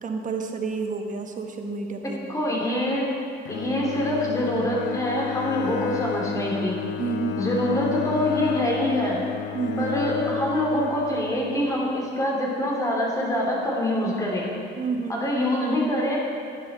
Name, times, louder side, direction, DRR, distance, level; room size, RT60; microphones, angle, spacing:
voice 1, 0.0-2.5 7.0-7.5 9.5-9.9 14.7-15.2, right 5 dB, 45° right, 4 dB, 1.2 m, -30 dB
voice 2, 2.3-3.0 3.5-6.8 7.4-9.2 9.8-14.5 15.1-16.2, equal, 20° left, -3 dB, 3.0 m, -25 dB
Bowed string instrument, 3.4-11.7, left 11 dB, 80° left, 0.6 m, -31 dB
11.0 x 10.0 x 4.3 m, 2.4 s
cardioid pair, 95°, 18 cm